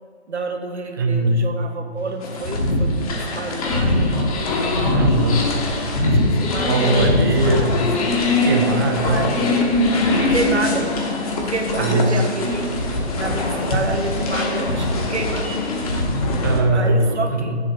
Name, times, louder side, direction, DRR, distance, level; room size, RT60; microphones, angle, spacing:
voice 1, 0.3-4.4 6.0-8.1 9.0-9.3 10.2-11.0 11.3-15.6 16.7-17.6, right 3 dB, 90° right, 4 dB, 1.4 m, -29 dB
voice 2, 1.0-1.4 4.9-5.5 6.7-7.8 8.4-9.3 11.8-12.1 16.4-17.6, right 2 dB, 20° right, 4 dB, 0.6 m, -20 dB
sound 1, 2.0-12.4, left 12 dB, 50° left, 0.8 m, -37 dB
sound 2, 2.2-16.6, left 2 dB, 35° left, 1.2 m, -21 dB
8.5 x 7.4 x 4.6 m, 2.1 s
hypercardioid pair, 150°, 33 cm